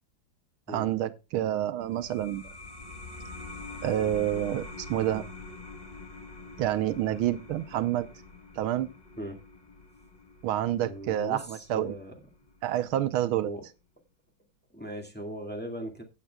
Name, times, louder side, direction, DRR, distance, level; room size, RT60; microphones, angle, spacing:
voice 1, 0.7-2.5 3.8-5.2 6.6-8.1 8.6-8.9 10.4-11.9 12.6-13.5, right 12 dB, 85° right, 1.6 m, -28 dB
sound 1, 1.8-13.0, left 3 dB, 25° left, 1.0 m, -45 dB
voice 2, 10.8-12.1 13.4-13.6 14.7-16.0, right 1 dB, 5° left, 1.9 m, -38 dB
17.0 x 8.2 x 2.3 m
omnidirectional pair, 2.3 m